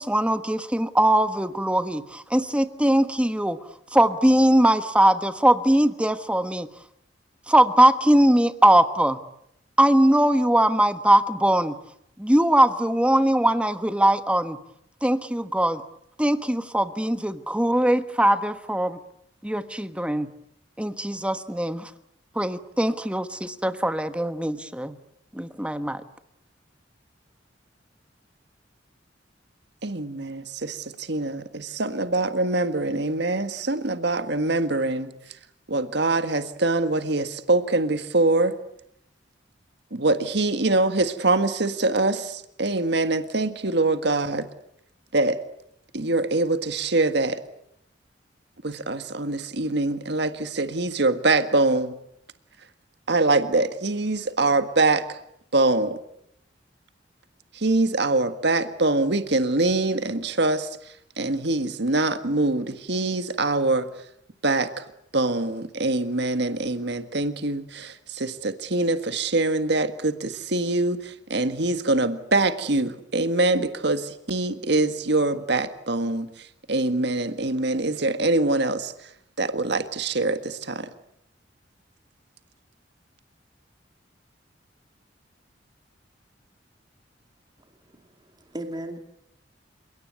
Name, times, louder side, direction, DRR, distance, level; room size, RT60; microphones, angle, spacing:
voice 1, 0.0-3.6 3.9-6.7 7.5-9.2 9.8-11.7 12.2-14.6 15.0-15.8 16.2-19.0 19.4-20.3 20.8-21.9 22.3-24.9 25.3-26.0, right 1 dB, 5° right, 11 dB, 1.3 m, -21 dB
voice 2, 29.8-35.1 35.7-38.6 39.9-44.5 45.1-45.4 45.9-47.4 48.6-52.0 53.1-55.2 55.5-56.0 57.5-63.9 64.4-64.9 65.1-79.1 79.4-80.9, right 2 dB, 65° right, 10 dB, 1.7 m, -24 dB
voice 3, 87.9-89.0, right 1 dB, 25° right, 5 dB, 2.4 m, -37 dB
29.5 x 18.0 x 9.4 m, 0.76 s
head